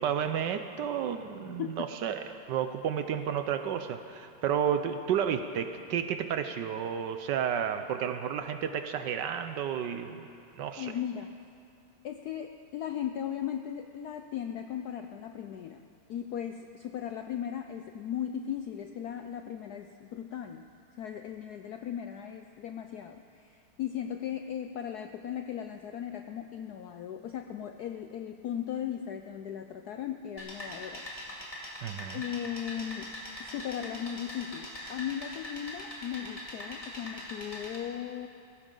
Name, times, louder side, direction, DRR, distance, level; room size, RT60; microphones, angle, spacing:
voice 1, 0.0-10.3 10.6-10.9 31.8-32.2, right 8 dB, 70° right, 8 dB, 1.1 m, -31 dB
voice 2, 1.4-1.8 10.8-11.3 12.0-15.8 16.1-20.7 20.9-31.0 31.6-33.1 33.4-38.3, left 9 dB, 75° left, 6 dB, 0.9 m, -37 dB
sound 1, 30.4-37.8, left 1 dB, 15° left, 2.2 m, -42 dB
19.5 x 16.0 x 3.8 m, 2.5 s
omnidirectional pair, 2.3 m